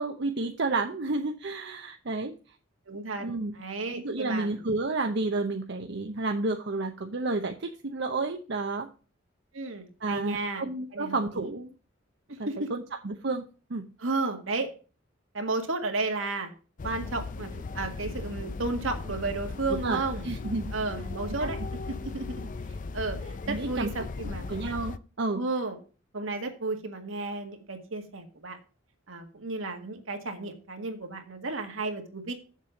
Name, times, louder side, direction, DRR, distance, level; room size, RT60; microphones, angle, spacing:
voice 1, 0.0-2.3 3.2-3.5 3.9-8.9 10.0-11.7 12.4-13.8 19.8-20.7 21.4-21.5 23.5-23.9 24.5-25.4, right 3 dB, 60° right, 4 dB, 0.8 m, -31 dB
voice 2, 2.9-3.3 3.5-4.6 9.5-10.7 10.9-11.5 12.3-12.7 14.0-14.7 15.3-16.5 16.8-17.5 17.7-20.3 20.7-22.5 22.9-24.5 25.3-25.8 26.1-28.6 29.1-32.3, right 3 dB, 75° right, 5 dB, 1.8 m, -33 dB
sound 1, 16.8-25.0, left 3 dB, 40° left, 0.5 m, -37 dB
7.4 x 7.4 x 5.1 m, 0.35 s
head